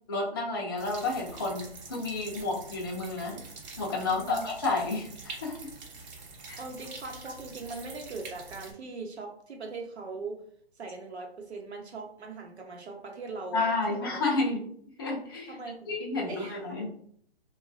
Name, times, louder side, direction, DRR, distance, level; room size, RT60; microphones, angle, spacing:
voice 1, 0.1-3.4 3.8-5.6 6.5-6.6 13.5-14.6 15.0-15.6 15.9-16.9, left 3 dB, 25° left, -3 dB, 0.3 m, -31 dB
sound 1, 0.8-8.7, right 3 dB, 45° right, 0.8 m, -45 dB
voice 2, 4.1-4.5 6.6-10.4 10.7-14.4 15.5-15.9 16.2-16.9, right 3 dB, 90° right, 2 dB, 0.9 m, -40 dB
3.0 x 2.3 x 2.5 m, 0.62 s
hypercardioid pair, 150°, 32 cm